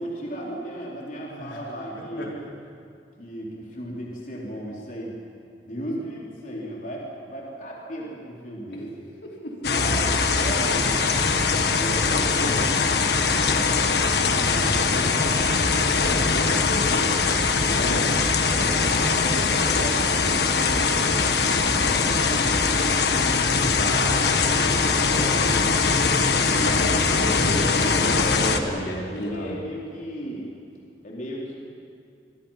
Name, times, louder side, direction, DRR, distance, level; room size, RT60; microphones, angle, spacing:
voice 1, 0.0-2.4 3.2-5.2 5.6-9.1 9.7-10.0 10.3-11.2 11.7-12.8 13.2-13.8 14.4-15.4 15.8-17.2 18.1-22.6 24.4-25.5 28.2-31.6, equal, 45° left, -4 dB, 4.1 m, -36 dB
voice 2, 1.9-2.3 9.2-10.0 14.9-15.1 17.8-18.1 23.8-24.4 26.3-29.5, left 1 dB, 80° left, -3 dB, 4.9 m, -32 dB
sound 1, 9.6-28.6, left 4 dB, 65° left, 1.5 m, -21 dB
26.5 x 24.0 x 5.8 m, 2.4 s
head